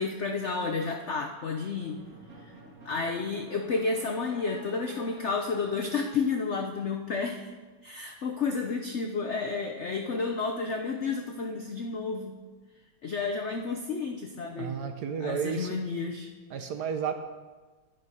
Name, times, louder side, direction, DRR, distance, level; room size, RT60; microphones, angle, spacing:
voice 1, 0.0-2.0 2.4-2.5 2.8-7.5 7.8-12.4 13.0-14.8 15.2-16.3, left 4 dB, 80° left, 3 dB, 0.6 m, -31 dB
sound 1, 1.8-7.2, right 2 dB, 40° right, 2.2 m, -50 dB
voice 2, 14.6-15.8 16.5-17.1, right 7 dB, 65° right, 7 dB, 1.1 m, -32 dB
10.5 x 7.6 x 5.4 m, 1.3 s
omnidirectional pair, 2.2 m